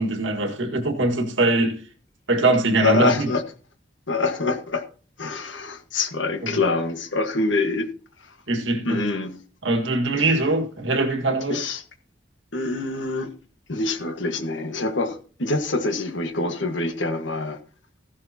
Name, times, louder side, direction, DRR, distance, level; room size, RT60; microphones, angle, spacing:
voice 1, 0.0-1.8 2.3-3.3 6.4-6.6 8.5-9.0 9.6-11.6, right 2 dB, 90° right, 1.9 m, -22 dB
voice 2, 2.8-3.4 4.1-4.8 5.2-7.9 8.2-8.4 8.8-9.4 10.2-10.4 11.5-11.8 12.5-13.3 13.7-17.6, left 3 dB, 85° left, 1.6 m, -25 dB
15.0 x 11.5 x 2.9 m
head